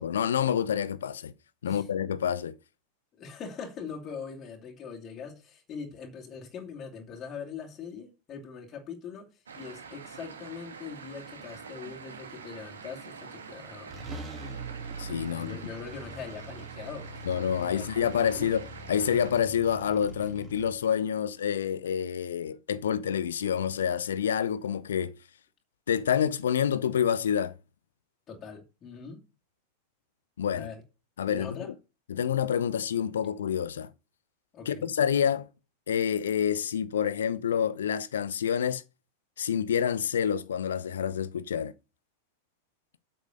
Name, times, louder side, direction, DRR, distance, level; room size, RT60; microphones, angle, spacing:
voice 1, 0.0-1.3 1.6-2.5 15.0-15.5 17.3-25.1 25.9-27.5 30.4-30.7 31.2-31.7 32.1-33.9 34.7-35.5 35.9-38.8 39.4-41.7, left 8 dB, 65° left, 0.7 m, -28 dB
voice 2, 3.2-14.1 15.3-17.1 17.6-18.5 28.3-29.2 30.5-30.8 31.3-31.7 34.5-34.9, left 6 dB, 30° left, 2.7 m, -42 dB
sound 1, 9.5-19.3, right 5 dB, 70° right, 1.7 m, -45 dB
sound 2, 13.5-13.6 13.9-20.7, right 2 dB, 25° right, 2.5 m, -42 dB
8.1 x 6.1 x 6.6 m
figure-of-eight pair, 90°, 0 cm